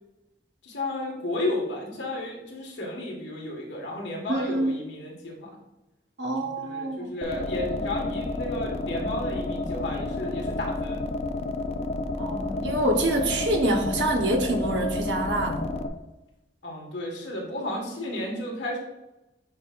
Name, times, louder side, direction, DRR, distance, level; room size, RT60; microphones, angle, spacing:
voice 1, 0.6-5.5 6.5-11.0 16.6-18.8, left 1 dB, 90° left, -2 dB, 1.7 m, -33 dB
voice 2, 4.3-4.7 6.2-7.0 12.1-15.6, right 1 dB, 75° right, 2 dB, 1.0 m, -26 dB
sound 1, 7.2-15.9, left 2 dB, 35° left, 0.4 m, -30 dB
7.5 x 5.0 x 2.5 m, 0.95 s
head